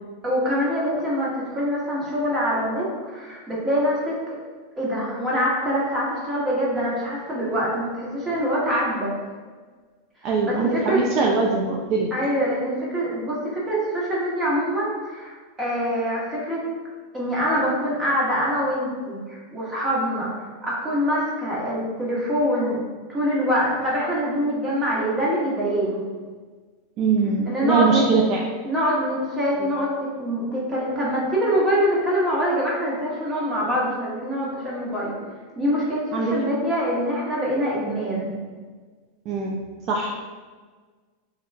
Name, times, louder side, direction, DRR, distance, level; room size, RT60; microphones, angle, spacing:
voice 1, 0.2-4.4 4.8-9.1 10.4-11.0 12.1-15.3 15.6-16.6 17.1-20.3 20.6-22.8 23.1-26.1 27.5-28.0 28.6-35.2 35.6-38.4, equal, 20° right, -6 dB, 1.2 m, -24 dB
voice 2, 10.2-12.1 27.0-28.4 29.6-29.7 36.1-36.3 39.3-39.6 39.9-40.2, right 4 dB, 45° right, -1 dB, 0.4 m, -22 dB
3.0 x 2.3 x 3.3 m, 1.5 s
supercardioid pair, 120°, 0 cm